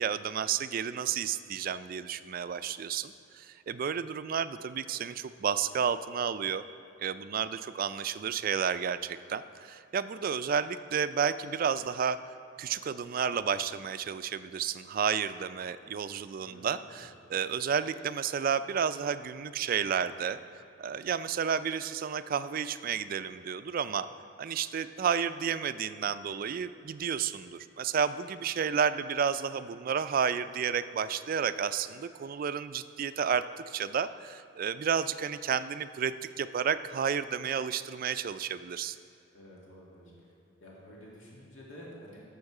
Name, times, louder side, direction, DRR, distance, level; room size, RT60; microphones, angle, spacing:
voice 1, 0.0-6.6 7.0-12.2 12.6-20.4 20.8-24.1 24.4-39.0, right 7 dB, 45° right, 13 dB, 0.3 m, -31 dB
voice 2, 16.4-17.1 39.3-40.3 40.6-42.2, equal, 90° left, -4 dB, 2.0 m, -50 dB
12.0 x 6.9 x 4.8 m, 2.7 s
head